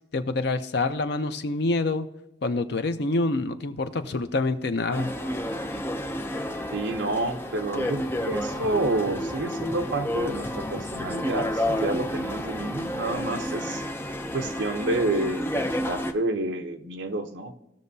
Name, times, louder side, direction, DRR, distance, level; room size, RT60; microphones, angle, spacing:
voice 1, 0.1-2.1 2.4-5.1, left 2 dB, 55° left, 9 dB, 0.6 m, -26 dB
sound 1, 4.9-16.1, equal, 10° left, 0.5 m, -30 dB
voice 2, 6.7-13.8 14.3-17.5, right 2 dB, 65° right, 7 dB, 0.8 m, -29 dB
17.5 x 6.3 x 2.7 m, 0.92 s
head